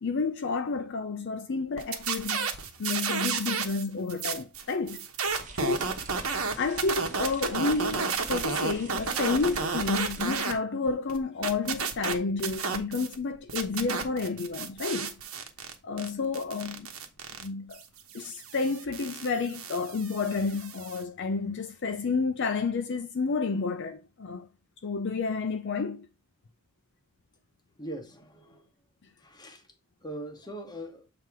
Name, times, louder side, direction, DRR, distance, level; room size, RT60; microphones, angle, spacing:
voice 1, 0.0-2.5 2.8-5.1 5.6-6.0 6.6-15.1 15.8-16.9 17.4-17.8 18.1-24.5 24.8-26.1, left 4 dB, 55° left, 0.5 m, -30 dB
sound 1, 1.8-3.8 4.1-10.5 10.9-13.2 13.5-21.0, right 5 dB, 85° right, 1.1 m, -32 dB
sound 2, 5.2-10.4, right 3 dB, 35° right, 0.9 m, -46 dB
voice 2, 27.8-28.7 29.2-29.6 30.0-31.1, right 1 dB, 20° left, 1.2 m, -41 dB
7.5 x 2.9 x 4.7 m
head